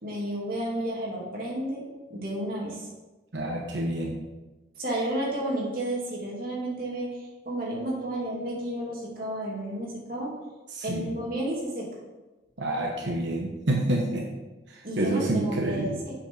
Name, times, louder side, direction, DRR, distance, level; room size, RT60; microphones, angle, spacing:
voice 1, 0.0-1.8 2.1-2.9 4.8-10.3 10.8-11.9 14.8-16.1, right 1 dB, 50° right, -4 dB, 2.8 m, -32 dB
voice 2, 3.3-4.2 10.7-11.1 12.6-14.3 14.7-16.0, right 1 dB, 85° right, -1 dB, 1.1 m, -28 dB
8.0 x 6.2 x 4.8 m, 1.1 s
head